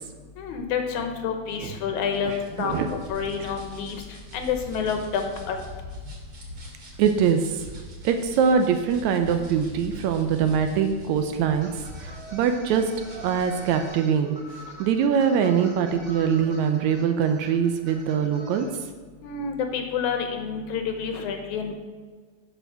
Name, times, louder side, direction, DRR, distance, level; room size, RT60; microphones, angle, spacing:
voice 1, 0.4-2.3 2.6-4.0 4.3-5.6 19.2-21.7, left 6 dB, 75° left, 5 dB, 2.3 m, -28 dB
sound 1, 2.1-13.9, left 1 dB, 45° right, 2.9 m, -43 dB
voice 2, 2.3-2.9 7.0-7.6 8.0-18.7, right 7 dB, 75° right, 6 dB, 1.9 m, -23 dB
sound 2, 11.6-18.7, equal, 25° right, 2.9 m, -45 dB
8.8 x 5.1 x 6.3 m, 1.5 s
omnidirectional pair, 3.5 m